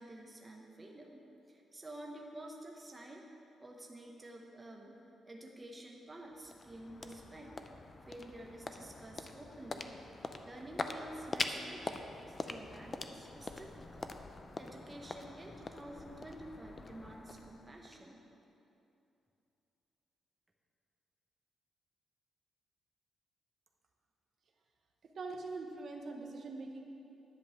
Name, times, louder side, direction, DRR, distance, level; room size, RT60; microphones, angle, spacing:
voice 1, 0.0-3.3 3.6-5.0 5.2-7.5 8.0-9.9 10.4-18.2, right 1 dB, 15° right, 0 dB, 0.8 m, -50 dB
sound 1, 6.0-18.4, left 3 dB, 25° left, 0.4 m, -44 dB
voice 2, 25.0-26.8, right 3 dB, 45° right, 2 dB, 0.9 m, -43 dB
10.5 x 5.3 x 7.5 m, 2.8 s
wide cardioid pair, 165°, 0 cm